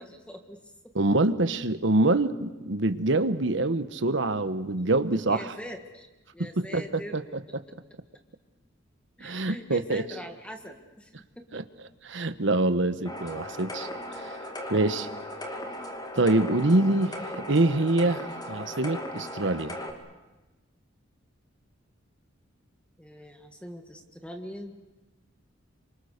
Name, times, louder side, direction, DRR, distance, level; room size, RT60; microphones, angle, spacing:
voice 1, 0.0-0.9 5.1-6.1 6.3-7.3 9.2-11.6 13.0-13.1 23.0-24.8, equal, 5° left, 4 dB, 1.7 m, -43 dB
voice 2, 0.9-5.5 6.4-7.2 9.2-10.0 11.5-11.6 12.0-13.9 14.7-15.1 16.1-17.2 17.5-19.8, right 2 dB, 65° right, 11 dB, 1.2 m, -25 dB
sound 1, 13.1-19.9, left 1 dB, 20° left, 2.6 m, -37 dB
27.5 x 25.5 x 6.7 m, 1.1 s
head